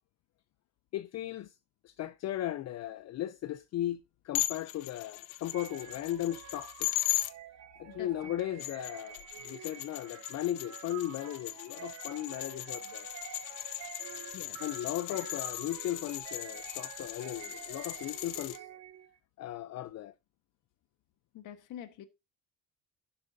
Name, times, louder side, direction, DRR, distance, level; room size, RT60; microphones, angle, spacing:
voice 1, 0.9-1.6 1.8-7.2 7.8-13.1 14.6-18.7 19.4-20.1, left 13 dB, 55° left, 0.6 m, -37 dB
sound 1, 4.3-7.3 8.4-18.6, left 17 dB, 90° left, 0.8 m, -38 dB
sound 2, 5.5-19.2, right 11 dB, 60° right, 1.2 m, -49 dB
voice 2, 7.9-8.4 14.3-14.6 15.1-15.2 21.3-22.1, left 11 dB, 75° left, 1.4 m, -47 dB
11.5 x 9.8 x 2.7 m
cardioid pair, 105°, 32 cm